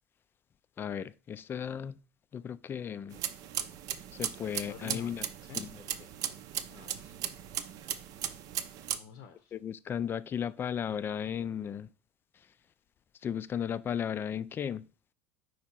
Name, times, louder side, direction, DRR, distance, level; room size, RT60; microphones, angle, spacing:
voice 1, 0.8-2.0 2.3-3.2 4.1-5.2 5.6-5.7 9.5-11.9 13.2-14.9, left 8 dB, 30° left, 0.4 m, -35 dB
sound 1, 3.1-9.0, right 10 dB, 55° right, 0.6 m, -37 dB
voice 2, 4.7-5.6 6.7-7.2 9.0-9.5, left 7 dB, 60° left, 0.8 m, -48 dB
5.0 x 4.4 x 4.5 m
hypercardioid pair, 75°, 8 cm